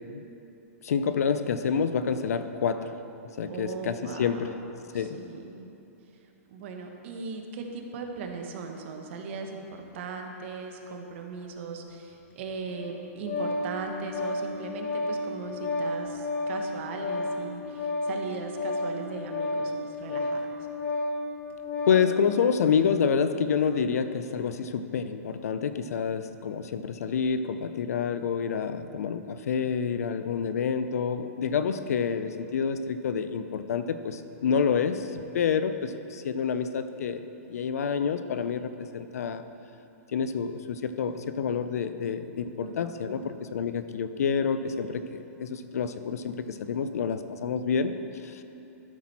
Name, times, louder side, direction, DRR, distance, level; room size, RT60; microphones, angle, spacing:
voice 1, 0.8-2.9 3.4-4.5 4.9-5.2 21.9-39.4 40.1-47.9 48.2-48.4, left 6 dB, 80° left, 11 dB, 0.6 m, -28 dB
voice 2, 3.5-4.6 4.9-5.7 6.5-19.7 20.0-20.4 42.6-43.3, right 4 dB, 50° right, 3 dB, 1.2 m, -38 dB
Organ, 12.7-22.1, left 2 dB, 20° left, 0.8 m, -32 dB
12.5 x 6.1 x 4.2 m, 2.8 s
hypercardioid pair, 150°, 8 cm